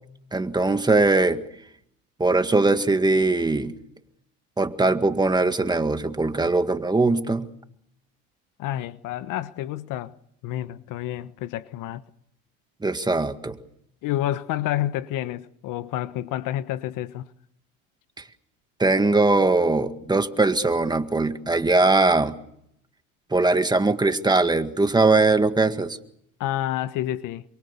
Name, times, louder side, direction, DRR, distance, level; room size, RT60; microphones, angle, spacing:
voice 1, 0.3-1.4 2.2-3.7 4.6-7.5 12.8-13.6 18.8-22.4 23.3-26.0, right 3 dB, 10° right, 1.9 m, -21 dB
voice 2, 8.6-10.1 10.4-12.0 14.0-17.3 26.4-27.4, left 13 dB, 55° left, 1.3 m, -29 dB
27.5 x 23.5 x 7.0 m
supercardioid pair, 105°, 38 cm